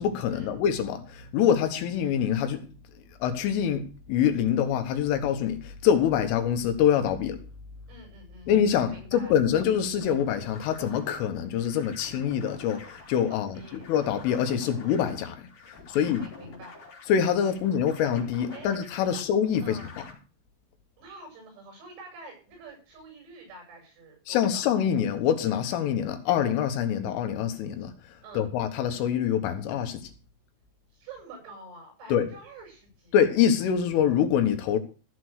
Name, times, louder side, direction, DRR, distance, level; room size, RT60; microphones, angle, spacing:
voice 1, 0.0-2.7 3.2-3.8 4.1-7.4 8.5-13.6 13.9-16.3 17.1-20.0 24.3-27.9 28.4-30.0 32.1-32.3 33.1-34.8, left 9 dB, 80° left, 3.7 m, -25 dB
voice 2, 7.9-8.6 8.9-9.4 13.3-13.9 15.9-16.8 17.5-17.6 18.5-18.7 19.1-19.2 19.6-19.9 21.0-24.6 28.2-28.5 30.9-33.2, right 2 dB, 85° right, 10.5 m, -47 dB
sound 1, 10.0-20.1, left 4 dB, 45° left, 4.9 m, -48 dB
15.5 x 6.9 x 6.3 m
omnidirectional pair, 5.9 m